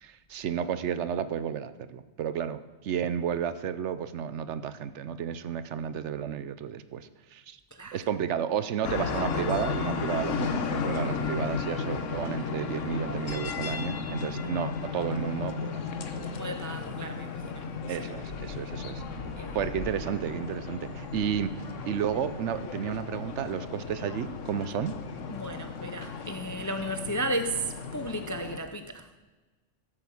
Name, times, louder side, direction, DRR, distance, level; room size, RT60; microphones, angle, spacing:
voice 1, 0.0-7.6 7.9-15.8 16.1-16.4 17.9-19.0 19.5-21.5 21.8-24.9, right 8 dB, 70° right, 1.0 m, -32 dB
voice 2, 7.7-8.1 14.4-14.5 16.4-18.1 19.4-19.7 25.3-29.0, right 1 dB, 25° left, 0.4 m, -34 dB
sound 1, 8.8-28.6, left 5 dB, 90° left, 1.3 m, -34 dB
sound 2, 11.1-24.2, right 3 dB, 30° right, 1.8 m, -50 dB
14.0 x 8.3 x 7.1 m
omnidirectional pair, 1.2 m